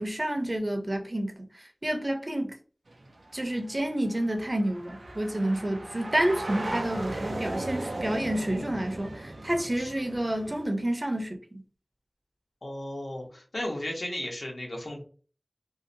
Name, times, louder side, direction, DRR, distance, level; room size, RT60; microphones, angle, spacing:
voice 1, 0.0-2.6 3.3-11.6, right 1 dB, 35° right, 0.6 m, -29 dB
sound 1, 2.9-10.6, right 2 dB, 85° right, 0.4 m, -37 dB
voice 2, 12.6-15.0, left 1 dB, 85° left, 0.8 m, -35 dB
2.7 x 2.0 x 2.6 m
wide cardioid pair, 50°, 0 cm